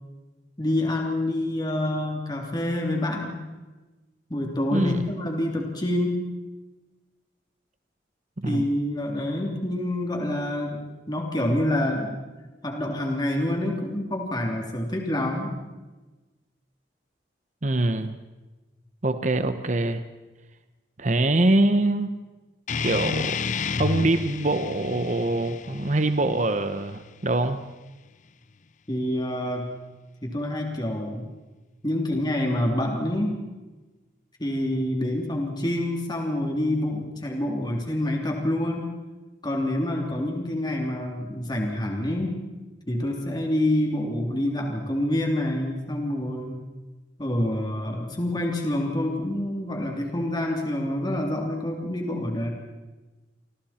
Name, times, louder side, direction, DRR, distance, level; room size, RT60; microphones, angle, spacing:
voice 1, 0.6-3.4 4.3-6.2 8.4-12.2 12.6-15.5 28.9-29.7 30.2-31.2 31.8-33.4 34.4-38.9 39.4-42.4 42.9-46.6 47.2-52.5, left 1 dB, 25° left, 1 dB, 3.1 m, -27 dB
voice 2, 4.7-5.0 8.4-8.6 17.6-18.1 19.0-20.0 21.0-22.2 22.8-23.4 23.8-27.6, right 2 dB, 45° right, 9 dB, 1.0 m, -24 dB
sound 1, 22.7-27.7, left 5 dB, 45° left, 0.7 m, -31 dB
29.0 x 26.0 x 4.4 m, 1.2 s
head